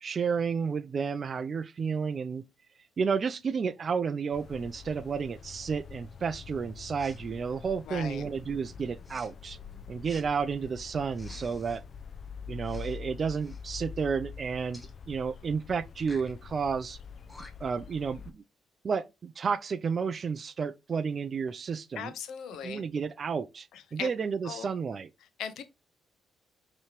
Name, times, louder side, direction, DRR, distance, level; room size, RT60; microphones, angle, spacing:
voice 1, 0.0-2.4 3.0-9.6 9.9-11.8 12.5-17.0 17.6-18.4 18.8-22.1 22.6-25.1, right 6 dB, 45° right, 0.4 m, -31 dB
sound 1, 4.3-18.3, left 6 dB, 50° left, 0.6 m, -45 dB
Respiratory sounds, 7.0-7.2 7.9-8.3 9.0-9.3 10.0-10.3 11.1-11.8 12.6-13.0 13.3-13.6 14.7-14.9 16.0-16.3 17.0-17.1 17.3-17.8, left 1 dB, 15° left, 1.1 m, -51 dB
voice 2, 7.9-8.2 21.9-22.8 23.7-24.1 24.4-24.7 25.4-25.6, left 8 dB, 80° left, 0.8 m, -38 dB
5.6 x 3.1 x 3.0 m
cardioid pair, 90°, 0 cm